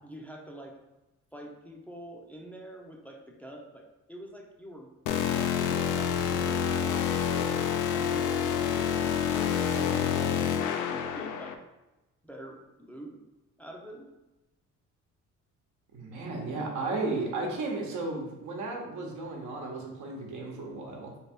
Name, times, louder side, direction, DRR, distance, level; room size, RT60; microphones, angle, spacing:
voice 1, 0.0-0.8 1.3-4.9 5.3-7.3 7.9-11.6 12.2-13.2 13.6-14.1, right 1 dB, 5° left, 0 dB, 0.5 m, -45 dB
sound 1, 5.1-11.5, left 8 dB, 75° left, 0.5 m, -28 dB
voice 2, 15.9-21.1, right 3 dB, 75° right, 0 dB, 1.0 m, -34 dB
3.3 x 2.4 x 4.3 m, 1.0 s
cardioid pair, 90°, 30 cm